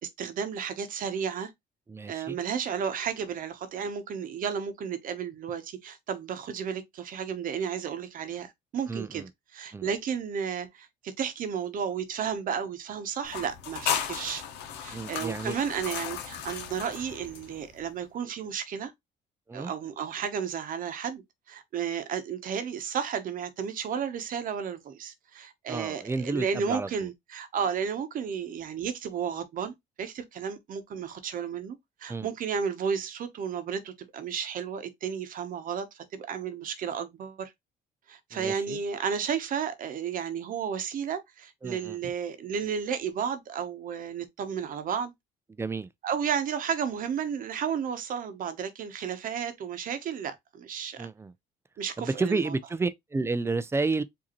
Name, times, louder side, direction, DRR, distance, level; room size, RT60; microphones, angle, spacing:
voice 1, 0.0-1.5 2.1-9.2 9.5-14.4 14.8-18.9 19.5-37.5 38.1-45.1 46.0-51.1 51.8-52.5, right 7 dB, 55° right, 0.9 m, -33 dB
voice 2, 1.9-2.4 8.9-9.3 9.7-9.9 14.9-15.6 19.5-19.7 25.7-27.1 32.1-32.3 38.3-38.8 41.6-42.0 45.5-45.9 51.0-51.3 52.0-54.0, right 3 dB, 15° right, 0.4 m, -31 dB
sound 1, 13.3-17.8, left 9 dB, 85° left, 0.9 m, -35 dB
4.9 x 2.7 x 2.9 m
cardioid pair, 110°, 17 cm